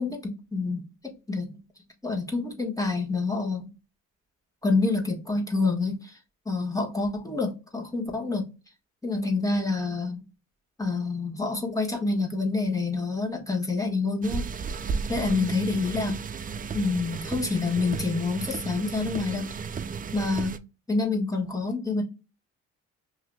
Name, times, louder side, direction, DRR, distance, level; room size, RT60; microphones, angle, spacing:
voice 1, 0.0-1.6 2.0-3.7 4.6-6.2 6.4-8.5 9.0-10.2 10.8-14.5 15.1-16.2 16.7-19.6 20.1-20.6 20.9-22.0, left 3 dB, 10° left, 1.5 m, -27 dB
sound 1, 14.2-20.6, right 5 dB, 30° right, 0.4 m, -34 dB
5.8 x 2.8 x 2.2 m
cardioid pair, 90°, 30 cm